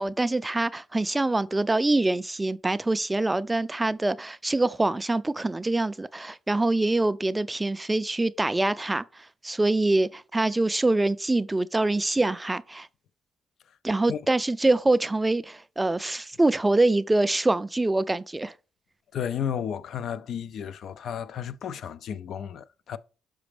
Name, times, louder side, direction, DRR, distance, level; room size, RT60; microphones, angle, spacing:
voice 1, 0.0-9.0 9.4-12.9 13.8-18.5, right 2 dB, 15° right, 0.3 m, -24 dB
voice 2, 19.1-23.0, left 8 dB, 65° left, 0.3 m, -33 dB
6.0 x 4.9 x 3.3 m
cardioid pair, 90°, 0 cm